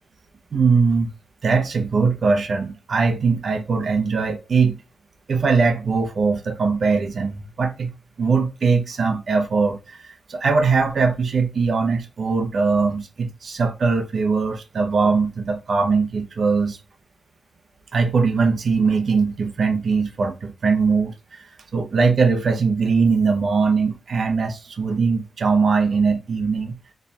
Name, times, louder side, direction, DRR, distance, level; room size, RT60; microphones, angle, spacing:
voice 1, 0.5-1.1 1.4-4.8 5.3-7.9 8.2-16.8 17.9-21.5 21.7-26.8, right 4 dB, 60° right, 0.7 m, -21 dB
4.2 x 3.3 x 2.3 m
wide cardioid pair, 115°, 0 cm